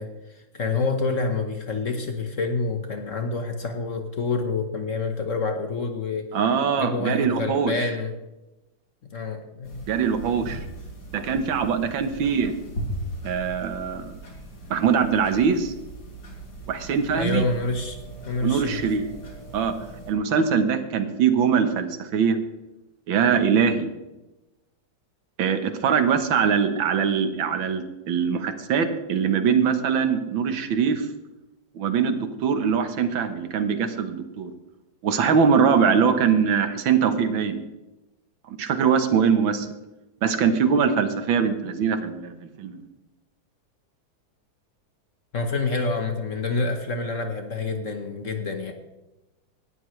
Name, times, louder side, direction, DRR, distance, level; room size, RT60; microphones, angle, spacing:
voice 1, 0.0-6.3 6.8-8.1 9.0-9.9 17.1-18.0 18.3-18.8 45.3-48.7, left 3 dB, 45° left, 5 dB, 1.3 m, -27 dB
voice 2, 6.3-7.7 9.9-10.6 11.1-12.5 13.2-14.1 14.7-15.7 16.7-17.4 18.4-19.1 19.5-19.7 20.1-22.4 23.1-23.9 25.4-31.1 31.8-34.5 35.0-37.6 38.6-39.7 40.2-42.8, right 6 dB, 80° right, 9 dB, 1.9 m, -22 dB
sound 1, 9.6-20.1, right 1 dB, 70° left, 3.5 m, -38 dB
18.0 x 12.5 x 3.2 m, 1.0 s
omnidirectional pair, 2.1 m